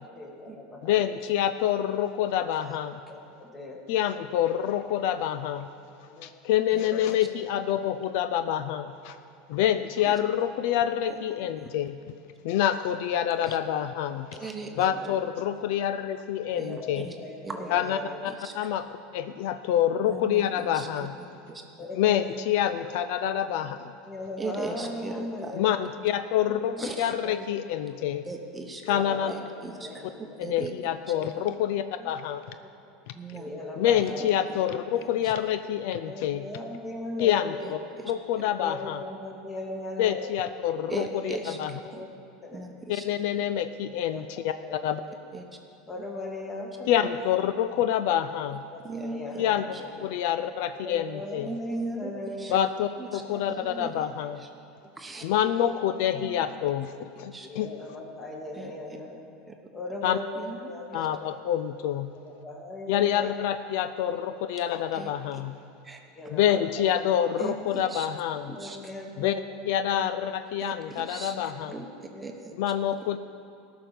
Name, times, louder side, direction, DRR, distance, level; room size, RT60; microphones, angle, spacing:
voice 1, 0.2-1.2 2.6-2.8 3.1-3.8 6.1-6.3 6.8-7.0 14.3-15.2 16.6-18.2 19.8-20.2 21.8-22.5 22.8-23.0 24.1-25.7 26.4-26.9 27.2-27.5 28.0-28.1 28.8-29.4 29.8-30.4 31.1-31.6 32.0-32.1 32.6-32.7 33.3-34.3 36.1-37.7 38.4-40.3 40.9-41.6 41.8-42.1 42.4-42.6 44.1-45.2 45.9-47.2 47.6-47.7 48.7-49.9 50.7-52.7 53.2-53.9 54.8-54.9 55.4-55.8 56.1-56.7 57.4-59.2 59.7-61.3 62.1-63.3 66.2-66.9 67.1-67.2 68.5-70.1 71.2-71.5 72.1-72.3, left 1 dB, 25° left, 0 dB, 2.1 m, -39 dB
voice 2, 0.8-2.9 3.9-5.7 6.2-9.2 9.5-12.0 12.4-14.3 14.8-17.1 17.7-18.0 18.5-18.8 19.1-21.1 22.0-23.9 25.6-28.2 28.9-29.3 30.5-32.4 33.8-36.4 37.2-37.8 38.1-39.0 40.0-41.7 42.9-44.5 44.8-45.0 46.9-48.6 49.4-49.6 50.0-51.5 52.5-54.4 55.2-56.9 57.2-57.7 60.0-60.2 60.9-62.1 62.9-65.6 66.3-68.5 69.2-69.4 69.7-71.7 72.6-73.2, left 10 dB, 70° left, 11 dB, 0.4 m, -27 dB
voice 3, 6.7-7.2 10.1-10.2 11.1-11.2 13.4-13.6 14.4-14.9 16.5-17.1 17.4-17.7 18.3-18.5 20.0-20.9 21.5-21.6 24.4-25.5 26.8-27.2 28.2-29.0 29.3-30.7 31.1-31.4 33.1-33.5 34.0-34.6 34.9-35.3 37.6-38.1 38.4-38.5 40.9-42.0 42.5-43.1 45.3-45.4 48.8-49.2 49.7-49.8 51.5-52.1 52.4-52.5 53.0-53.2 53.5-54.1 54.4-54.5 55.0-55.3 57.3-57.5 58.6-58.7 60.4-61.0 64.9-65.4 65.8-66.0 67.4-68.1 68.5-68.8 70.6-72.5, right 3 dB, 15° right, 3 dB, 1.0 m, -39 dB
14.5 x 6.0 x 6.9 m, 2.6 s
supercardioid pair, 120°, 0 cm